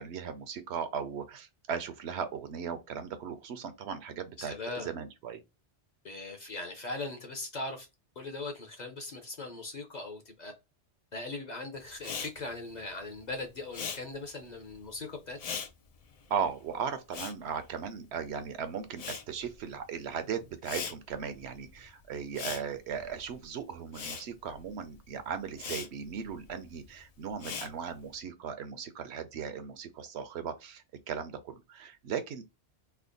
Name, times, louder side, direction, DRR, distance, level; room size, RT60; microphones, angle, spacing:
voice 1, 0.0-5.4 16.3-32.4, right 7 dB, 70° right, 0.8 m, -37 dB
voice 2, 4.4-4.9 6.0-7.9 8.2-10.5 11.1-15.6, left 2 dB, 45° left, 0.7 m, -40 dB
Respiratory sounds, 12.0-18.4 18.7-28.2, left 6 dB, 70° left, 0.3 m, -42 dB
3.3 x 2.1 x 3.7 m
omnidirectional pair, 1.2 m